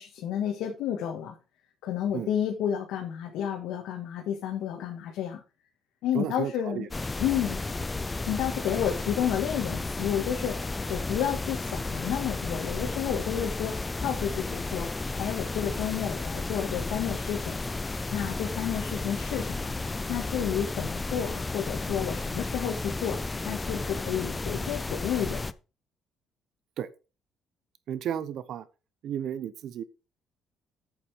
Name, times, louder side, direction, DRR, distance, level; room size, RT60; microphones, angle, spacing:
voice 1, 0.0-1.4 1.8-5.4 6.0-6.9 7.2-7.6 8.3-10.6 10.9-14.9 15.1-17.6 18.1-19.7 20.1-23.2 23.5-25.5, left 9 dB, 85° left, 2.0 m, -31 dB
voice 2, 6.1-6.9 26.8-26.9 27.9-28.7 29.0-29.8, right 9 dB, 55° right, 0.8 m, -33 dB
sound 1, 6.9-25.5, left 3 dB, 15° left, 0.4 m, -33 dB
8.6 x 7.2 x 5.1 m
cardioid pair, 165°, 0 cm